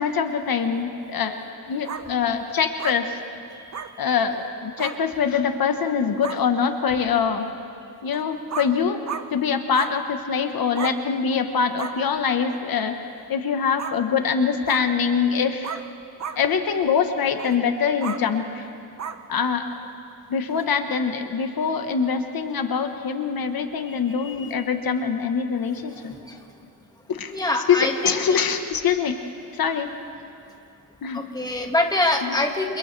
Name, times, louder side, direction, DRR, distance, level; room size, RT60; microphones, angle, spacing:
voice 1, 0.0-1.4 1.7-3.2 4.0-7.5 8.0-9.0 9.3-15.7 16.3-18.6 19.3-19.7 20.3-26.1 27.1-27.3 27.7-29.2 29.5-29.9 31.0-31.2 32.2-32.4, left 6 dB, 75° left, 6 dB, 1.2 m, -24 dB
sound 1, 1.8-2.0 2.8-3.0 3.7-3.9 4.8-5.0 5.8-5.9 6.2-6.4 8.1-8.2 8.5-8.7 9.1-9.2 9.7-9.9 10.7-11.0 11.8-11.9 13.8-14.0 14.7-14.8 15.6-15.9 16.2-16.4 17.4-17.5 18.0-18.2 19.0-19.2 20.5-20.6, right 7 dB, 50° right, 0.8 m, -32 dB
voice 2, 23.9-24.5 26.3-26.4 27.3-28.4 31.1-32.8, left 2 dB, 10° left, 2 dB, 1.8 m, -25 dB
29.5 x 27.5 x 3.3 m, 2.6 s
wide cardioid pair, 130°, 36 cm